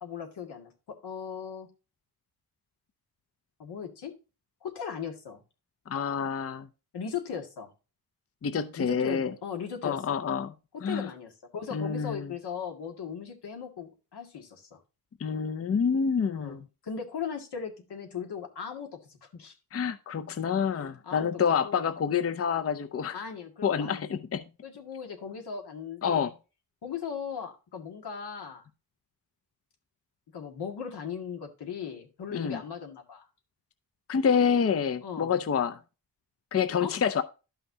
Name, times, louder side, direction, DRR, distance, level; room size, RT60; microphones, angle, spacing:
voice 1, 0.0-1.7 3.6-4.1 4.6-5.4 6.9-7.7 8.8-10.2 10.9-14.8 16.3-19.5 20.7-21.9 23.1-24.0 24.6-26.3 26.8-28.6 30.3-33.3 35.0-35.4 36.8-36.9, left 7 dB, 85° left, 2.0 m, -38 dB
voice 2, 5.9-6.7 8.4-9.3 9.8-10.5 10.8-11.1 11.7-12.3 15.2-16.6 19.7-23.2 23.6-24.4 26.0-26.3 32.3-32.6 34.1-35.8 36.5-37.2, left 7 dB, 40° left, 0.6 m, -27 dB
12.0 x 5.7 x 2.7 m
wide cardioid pair, 110°, 39 cm